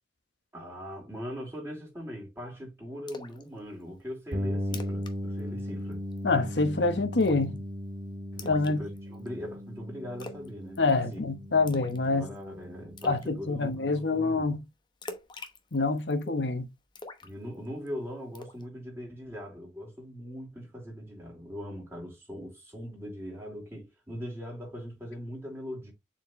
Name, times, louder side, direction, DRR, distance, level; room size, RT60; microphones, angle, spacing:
voice 1, 0.5-6.0 8.3-11.2 12.0-14.6 17.2-25.9, equal, 15° right, 4.1 m, -41 dB
Splash splatter, 3.1-3.4 3.8-3.9 4.3-4.4 4.6-5.1 5.4-5.6 5.9-6.3 7.2-7.6 8.4-9.3 10.2-10.5 10.7-11.1 11.7-12.0 12.4-12.5 13.0-13.3 15.0-16.3 16.9-17.9 18.3-18.6, left 3 dB, 25° left, 0.9 m, -43 dB
sound 1, 4.3-14.0, equal, 75° right, 2.6 m, -37 dB
voice 2, 6.2-7.6 8.4-8.8 10.8-12.3 13.0-14.6 15.7-16.6, left 3 dB, 80° left, 1.1 m, -26 dB
7.1 x 4.5 x 3.2 m
head